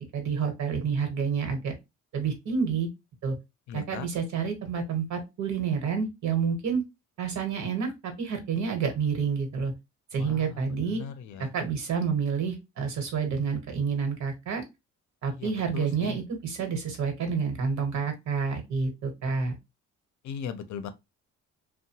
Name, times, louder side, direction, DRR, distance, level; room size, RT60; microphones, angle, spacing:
voice 1, 0.1-1.7 2.1-2.9 3.2-3.3 3.7-6.8 7.2-9.7 10.1-11.0 11.4-14.6 15.2-19.5, right 6 dB, 65° right, 1.1 m, -29 dB
voice 2, 3.7-4.1 10.2-10.5 10.8-11.5 15.4-16.1 20.2-20.9, left 7 dB, 70° left, 0.5 m, -38 dB
2.8 x 2.1 x 2.8 m
cardioid pair, 90°, 30 cm